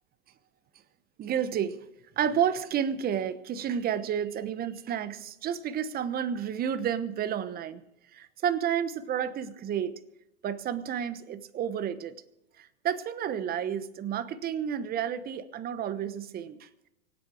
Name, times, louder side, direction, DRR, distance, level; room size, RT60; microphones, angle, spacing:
voice 1, 1.2-1.8 2.2-7.8 8.1-10.0 10.4-12.2 12.6-16.7, right 9 dB, 25° right, 13 dB, 1.1 m, -31 dB
24.5 x 8.3 x 4.8 m, 0.89 s
hypercardioid pair, 120°, 36 cm